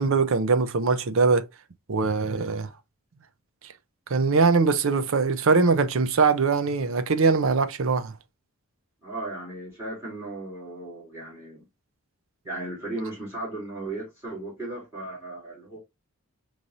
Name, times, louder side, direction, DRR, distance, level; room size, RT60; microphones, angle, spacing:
voice 1, 0.0-1.5 1.9-2.7 4.1-8.1, right 4 dB, 65° right, 0.5 m, -22 dB
voice 2, 9.0-11.7 12.4-15.8, right 2 dB, 10° right, 2.6 m, -36 dB
5.1 x 3.1 x 2.6 m
head